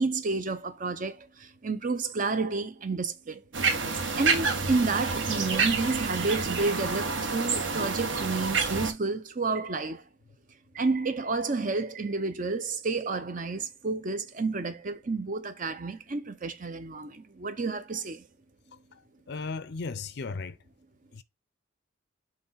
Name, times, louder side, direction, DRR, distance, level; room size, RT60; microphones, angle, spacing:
voice 1, 0.0-3.4 4.2-10.0 10.7-18.3, right 3 dB, 40° right, 0.6 m, -30 dB
sound 1, 3.5-8.9, right 4 dB, 65° right, 1.7 m, -28 dB
voice 2, 19.3-20.6 21.1-21.2, left 4 dB, 55° left, 0.5 m, -35 dB
6.6 x 3.2 x 5.6 m
head